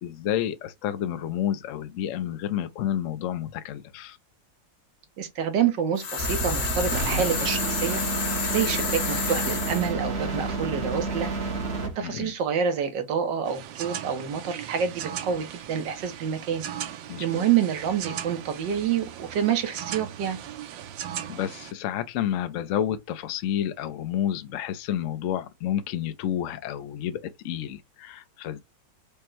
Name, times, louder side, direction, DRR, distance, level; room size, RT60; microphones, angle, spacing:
voice 1, 0.0-4.2 12.0-12.3 17.1-17.5 21.3-28.6, left 10 dB, 75° left, 0.7 m, -30 dB
voice 2, 5.2-8.0 8.5-11.3 12.0-16.6 17.2-20.4, right 8 dB, 70° right, 1.6 m, -27 dB
sound 1, 6.0-9.9, left 6 dB, 60° left, 1.4 m, -30 dB
sound 2, 6.2-12.0, right 3 dB, 40° right, 1.0 m, -30 dB
sound 3, 13.4-21.7, right 10 dB, 90° right, 1.4 m, -38 dB
5.1 x 2.2 x 4.5 m
omnidirectional pair, 2.0 m